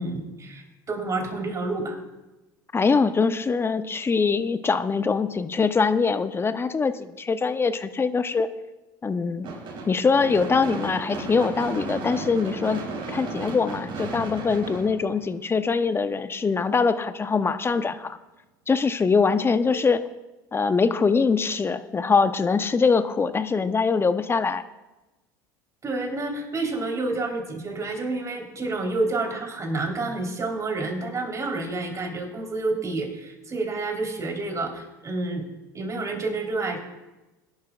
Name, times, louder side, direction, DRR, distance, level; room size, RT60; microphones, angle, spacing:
voice 1, 0.0-2.0 19.7-19.8 25.8-35.5 35.7-36.8, right 3 dB, 30° right, 2 dB, 3.8 m, -29 dB
voice 2, 2.7-8.5 9.0-9.5 9.9-12.8 13.1-18.2 18.7-20.0 20.5-24.6, left 5 dB, 20° left, 11 dB, 0.8 m, -23 dB
Gunshot gunfire / Fireworks, 9.4-15.7, right 3 dB, 50° right, 4.4 m, -34 dB
22.0 x 11.5 x 2.5 m, 1.1 s
hypercardioid pair, 85°, 11 cm